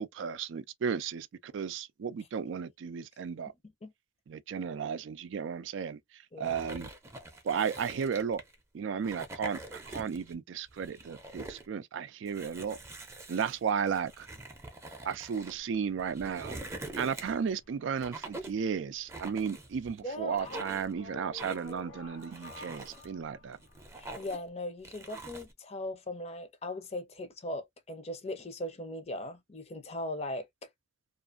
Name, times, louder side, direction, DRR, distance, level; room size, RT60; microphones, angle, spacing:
voice 1, 0.0-3.5 4.3-6.9 7.4-8.4 8.7-12.8 13.3-14.3 15.0-16.6 17.0-23.6, right 6 dB, 80° right, 0.4 m, -34 dB
sound 1, 6.4-8.5 9.0-10.3 10.7-11.7 12.3-15.5 16.0-17.5 18.0-18.6 19.1-20.0 20.4-20.9 21.4-21.8 22.2-23.1 23.5-24.5 24.8-25.5, right 2 dB, 15° right, 0.5 m, -44 dB
sound 2, 15.3-24.3, left 3 dB, 75° left, 0.7 m, -53 dB
voice 2, 20.0-20.8 24.0-30.7, left 1 dB, 35° left, 0.6 m, -39 dB
2.5 x 2.4 x 2.4 m
head